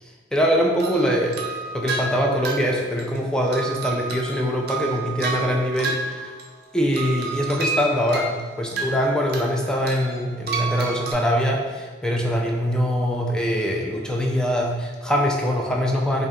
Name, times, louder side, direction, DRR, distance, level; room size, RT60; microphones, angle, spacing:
voice 1, 0.0-1.4 1.7-6.3 6.7-16.3, equal, 5° left, -1 dB, 0.4 m, -23 dB
sound 1, 0.8-6.6 6.9-9.5 9.9-11.1, right 4 dB, 55° right, 0.5 m, -31 dB
3.3 x 2.7 x 3.6 m, 1.4 s
head